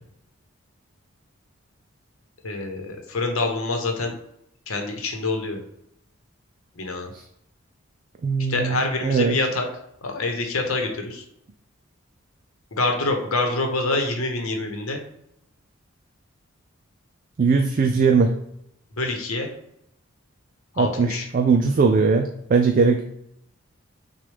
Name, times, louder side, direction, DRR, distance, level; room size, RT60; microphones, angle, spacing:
voice 1, 2.4-4.1 4.7-5.6 6.8-7.1 8.5-9.7 10.0-11.2 12.8-15.0 18.9-19.5 20.7-21.3, left 2 dB, 80° left, 4 dB, 0.9 m, -26 dB
voice 2, 8.2-9.4 17.4-18.3 20.8-23.0, right 4 dB, 40° right, 4 dB, 0.3 m, -20 dB
6.2 x 2.3 x 3.4 m, 0.76 s
head